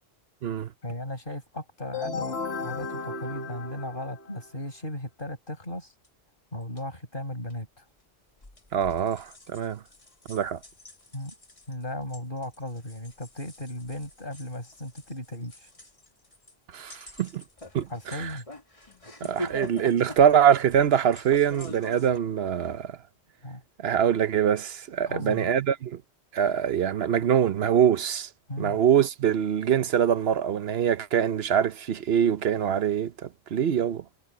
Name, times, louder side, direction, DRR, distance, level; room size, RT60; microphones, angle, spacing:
voice 1, 0.8-5.9 6.5-7.8 11.1-11.3 11.7-15.7 17.9-18.5 23.4-23.6 25.1-25.5 28.5-28.8, left 1 dB, 55° left, 7.7 m, -36 dB
sound 1, 1.9-4.6, left 4 dB, 75° left, 1.9 m, -34 dB
sound 2, 6.0-6.1 6.6-6.8 7.5-7.6 8.4-22.2, equal, 30° left, 2.1 m, -44 dB
voice 2, 8.7-9.8 10.3-10.6 16.7-17.4 17.7-18.3 19.2-23.0 23.8-26.0 26.3-28.3 28.6-34.0, right 9 dB, 70° right, 1.0 m, -24 dB
omnidirectional pair, 1.1 m